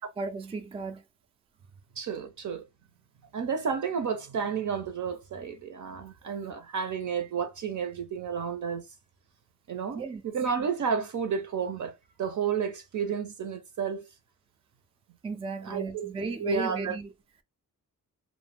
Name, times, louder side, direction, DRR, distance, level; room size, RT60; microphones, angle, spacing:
voice 1, 0.2-1.0 9.9-10.2 15.2-17.1, right 4 dB, 15° right, 0.4 m, -35 dB
voice 2, 2.0-2.7 3.3-8.9 9.7-14.0 15.6-16.1 16.4-17.0, right 6 dB, 60° right, 0.6 m, -31 dB
2.1 x 2.1 x 3.1 m
cardioid pair, 90°, 35 cm